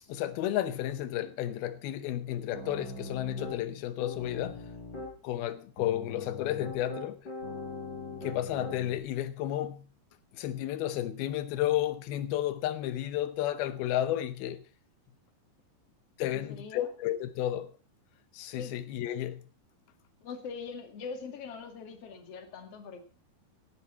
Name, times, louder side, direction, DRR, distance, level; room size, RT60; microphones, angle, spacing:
voice 1, 0.1-4.6 5.2-7.3 8.2-9.8 10.3-14.6 16.2-17.7 18.3-19.4, left 12 dB, 85° left, 2.8 m, -32 dB
Piano, 2.5-3.6 4.0-5.1 5.8-9.0, left 3 dB, 25° left, 5.8 m, -41 dB
voice 2, 16.3-16.9 18.5-18.8 20.2-23.0, left 5 dB, 45° left, 2.8 m, -42 dB
17.5 x 11.5 x 4.4 m
omnidirectional pair, 4.3 m